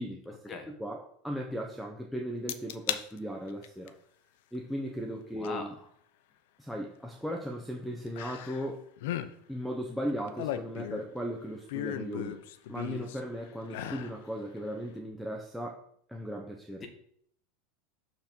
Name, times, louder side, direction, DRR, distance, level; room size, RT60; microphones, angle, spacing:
voice 1, 0.0-0.4 0.8-3.9 4.5-5.7 6.6-8.8 9.5-12.4 12.7-15.8 16.1-16.8, equal, ahead, -1 dB, 0.8 m, -37 dB
sound 1, 2.5-3.0 3.5-3.9 5.4-5.5 8.2-8.7 9.0-9.3 10.1-11.2 11.7-13.2 13.7-14.2 14.6-14.7, left 11 dB, 70° left, 0.6 m, -36 dB
voice 2, 5.4-5.7, left 3 dB, 25° left, 4 dB, 1.5 m, -39 dB
6.6 x 5.9 x 4.5 m, 0.67 s
supercardioid pair, 145°, 0 cm